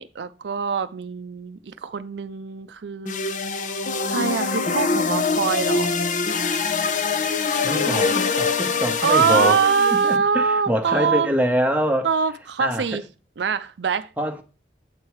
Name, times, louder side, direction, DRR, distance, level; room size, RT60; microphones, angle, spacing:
voice 1, 0.0-3.2 4.1-6.0 7.9-8.2 9.0-11.3 12.0-13.0 13.4-14.1, right 6 dB, 80° right, 0.5 m, -23 dB
sound 1, 3.1-10.2, left 4 dB, 45° left, 0.6 m, -24 dB
voice 2, 7.6-9.6 9.9-12.1 12.6-13.0 14.2-14.4, equal, 10° right, 0.8 m, -24 dB
8.1 x 4.5 x 4.7 m
head